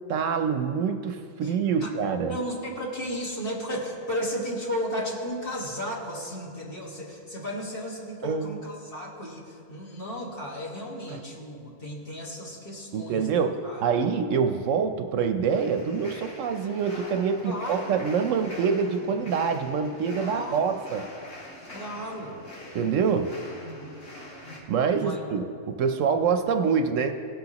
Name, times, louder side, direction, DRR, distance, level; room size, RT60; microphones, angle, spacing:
voice 1, 0.0-2.3 8.2-8.6 11.1-11.2 12.9-21.1 22.7-23.4 24.7-27.2, right 6 dB, 70° right, 6 dB, 0.9 m, -26 dB
voice 2, 1.4-1.9 2.3-13.8 17.4-18.0 20.2-20.8 21.7-22.4 24.9-25.2, equal, 45° left, -3 dB, 1.8 m, -34 dB
sound 1, 15.5-24.6, left 1 dB, 75° left, 2.5 m, -43 dB
17.5 x 7.9 x 2.9 m, 2.5 s
omnidirectional pair, 1.4 m